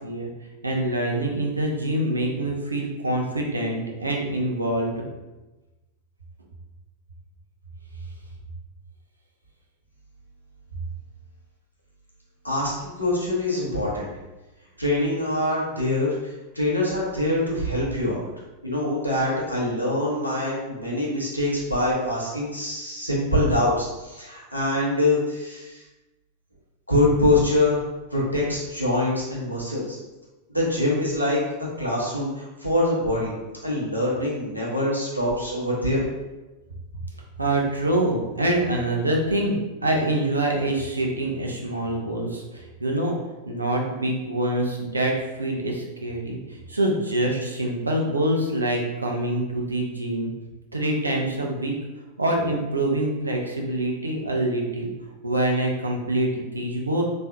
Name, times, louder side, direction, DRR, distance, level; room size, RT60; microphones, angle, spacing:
voice 1, 0.6-5.0 37.4-43.1 43.5-46.4 46.7-50.3 50.7-51.7 52.2-54.9 55.2-57.0, right 1 dB, 80° right, 0 dB, 0.6 m, -25 dB
voice 2, 12.4-14.1 14.8-18.2 18.6-25.8 26.9-27.8 28.1-30.0 30.5-31.4 31.8-33.3 33.6-36.0, left 1 dB, 90° left, -5 dB, 1.0 m, -24 dB
3.5 x 3.2 x 2.7 m, 1.1 s
figure-of-eight pair, 90°, 0 cm